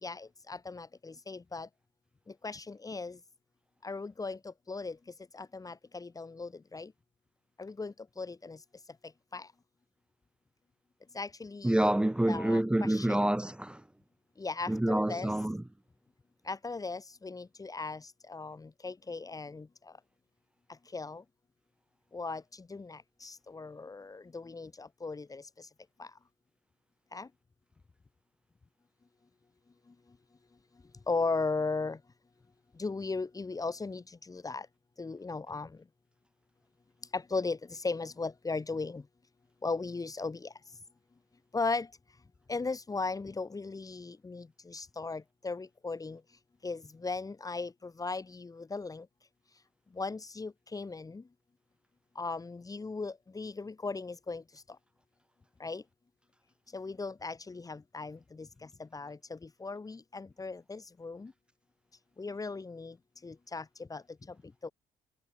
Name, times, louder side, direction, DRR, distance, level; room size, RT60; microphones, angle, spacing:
voice 1, 0.0-1.7 2.4-3.2 3.8-5.0 5.3-6.9 7.6-8.6 9.3-9.5 11.1-11.9 12.3-13.2 14.4-15.3 16.4-19.7 20.9-21.2 22.1-25.7 26.0-26.1 27.1-27.3 31.1-32.0 32.8-34.7 35.0-35.7 37.1-39.0 39.6-40.5 41.5-41.9 42.5-46.2 46.6-49.1 50.0-51.2 52.1-54.4 55.6-55.8 56.7-61.3 62.2-62.9 63.2-63.6 63.9-64.0 64.6-64.7, left 3 dB, 20° left, 3.1 m, -37 dB
voice 2, 11.6-13.8 14.7-15.6, right 1 dB, 5° right, 0.7 m, -27 dB
cardioid pair, 110°, 17 cm